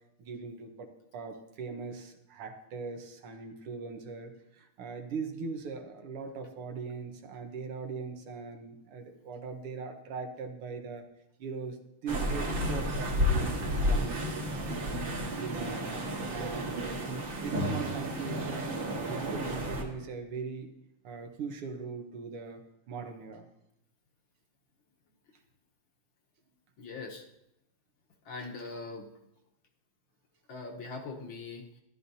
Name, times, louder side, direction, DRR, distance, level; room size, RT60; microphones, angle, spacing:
voice 1, 0.2-11.1 11.4-15.1 15.4-16.8 17.0-18.7 19.1-20.7 21.0-22.6 22.9-23.5, right 4 dB, 85° right, 5 dB, 2.0 m, -40 dB
sound 1, 12.1-19.8, equal, 60° right, 2.1 m, -32 dB
voice 2, 26.8-27.3 28.3-29.1 30.5-31.8, left 3 dB, 70° left, 1 dB, 1.9 m, -41 dB
13.5 x 11.5 x 2.7 m, 0.82 s
omnidirectional pair, 2.4 m